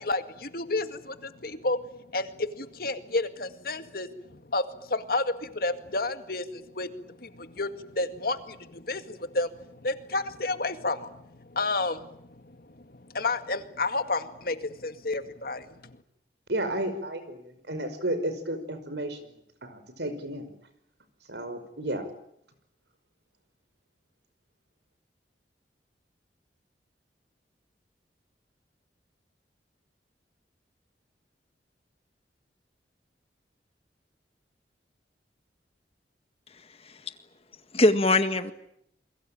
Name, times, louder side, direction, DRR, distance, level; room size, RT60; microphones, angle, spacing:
voice 1, 0.0-16.0, left 2 dB, 55° left, 9 dB, 2.1 m, -31 dB
voice 2, 16.5-20.5 21.3-22.1, right 1 dB, 75° right, 11 dB, 5.4 m, -33 dB
voice 3, 36.5-37.1 37.7-38.5, left 2 dB, 35° left, 10 dB, 1.9 m, -24 dB
28.5 x 22.5 x 8.9 m, 0.74 s
head